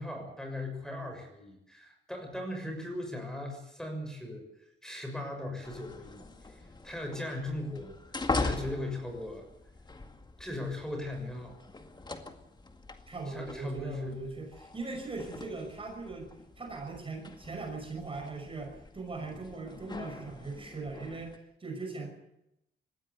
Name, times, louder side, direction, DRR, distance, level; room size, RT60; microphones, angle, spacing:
voice 1, 0.0-4.4 4.8-6.2 6.4-6.5 6.8-7.9 8.4-9.4 10.4-11.6 13.3-14.2, left 1 dB, 5° left, 3 dB, 6.5 m, -38 dB
sound 1, 5.6-21.4, left 3 dB, 25° left, 2.0 m, -41 dB
voice 2, 13.1-16.3 16.6-22.1, right 3 dB, 30° right, 3 dB, 5.9 m, -39 dB
20.5 x 16.0 x 8.3 m, 0.82 s
cardioid pair, 105°, 18 cm